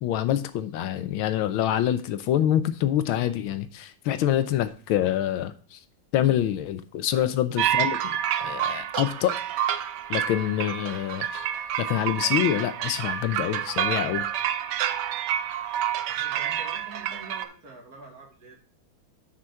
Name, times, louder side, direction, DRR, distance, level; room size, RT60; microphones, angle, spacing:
voice 1, 0.0-5.8 6.1-8.2 8.4-9.4 10.1-11.3 11.8-14.3, left 11 dB, 80° left, 1.5 m, -26 dB
voice 2, 7.1-7.7 16.1-18.6, right 3 dB, 45° right, 2.3 m, -46 dB
sound 1, 7.6-17.4, right 10 dB, 70° right, 1.1 m, -28 dB
6.3 x 6.0 x 5.6 m
omnidirectional pair, 2.2 m